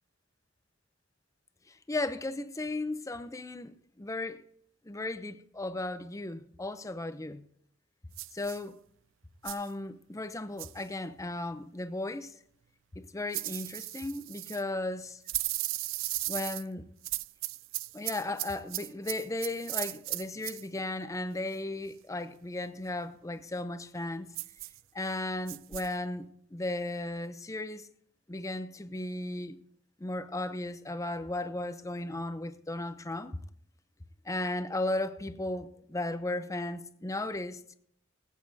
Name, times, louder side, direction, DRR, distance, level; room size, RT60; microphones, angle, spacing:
voice 1, 1.7-4.4 4.8-7.4 8.3-8.8 9.4-12.3 12.9-15.2 16.3-16.9 17.9-24.3 24.9-26.2 26.5-27.9 28.3-29.6 30.0-33.4 34.3-37.6, left 2 dB, 15° left, 0.6 m, -35 dB
sound 1, 8.2-8.6 9.5-9.7 10.6-10.8 13.3-14.6 15.3-16.6 17.0-20.6 24.3-24.8 25.5-25.9, right 18 dB, 65° right, 0.3 m, -36 dB
22.0 x 8.4 x 2.7 m
head